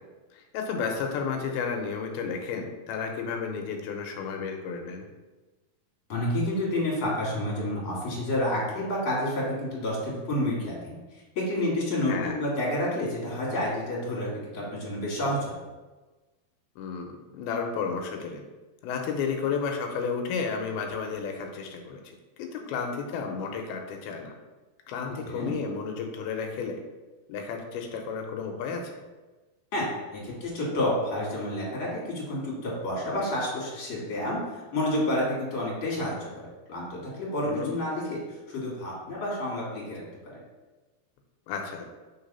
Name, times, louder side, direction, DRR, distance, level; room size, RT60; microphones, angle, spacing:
voice 1, 0.3-5.1 12.1-12.4 16.8-18.4 18.8-22.0 22.4-24.4 24.9-26.8 27.3-28.9 37.4-37.7 41.5-41.9, left 5 dB, 80° left, 3 dB, 2.5 m, -32 dB
voice 2, 6.1-14.3 14.5-15.5 25.3-25.5 29.7-40.0, left 1 dB, 40° left, -6 dB, 2.5 m, -29 dB
5.5 x 3.9 x 5.4 m, 1.2 s
omnidirectional pair, 4.5 m